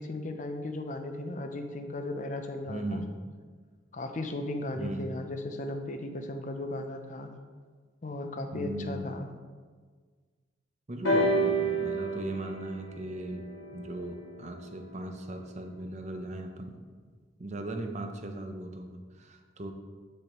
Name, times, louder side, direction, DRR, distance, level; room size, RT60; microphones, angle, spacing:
voice 1, 0.0-3.1 3.9-7.3 8.0-9.3, left 2 dB, 40° left, 6 dB, 0.5 m, -36 dB
voice 2, 2.7-3.2 4.8-5.1 8.5-9.2 10.9-13.5 13.7-16.8 17.4-19.7, right 1 dB, 35° right, 5 dB, 0.6 m, -38 dB
sound 1, 11.0-14.9 15.8-15.9, right 1 dB, 85° left, 1.8 m, -30 dB
8.3 x 6.3 x 3.0 m, 1.5 s
head